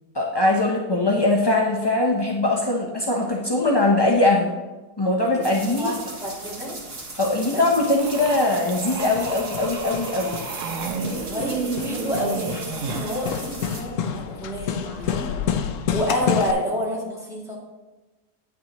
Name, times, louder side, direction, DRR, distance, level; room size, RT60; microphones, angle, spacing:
voice 1, 0.1-4.5 5.0-5.9 7.2-10.4, left 2 dB, 30° left, -2 dB, 0.4 m, -21 dB
voice 2, 5.2-5.9 6.2-6.8 7.5-7.6 11.2-15.3 15.9-17.6, equal, ahead, -6 dB, 2.3 m, -29 dB
sound 1, 5.4-13.8, right 2 dB, 35° right, 1.6 m, -38 dB
sound 2, 8.0-13.3, right 5 dB, 60° right, 1.0 m, -32 dB
Hammer, 9.0-16.5, left 8 dB, 65° left, 0.9 m, -30 dB
9.3 x 8.9 x 3.0 m, 1.1 s
omnidirectional pair, 1.7 m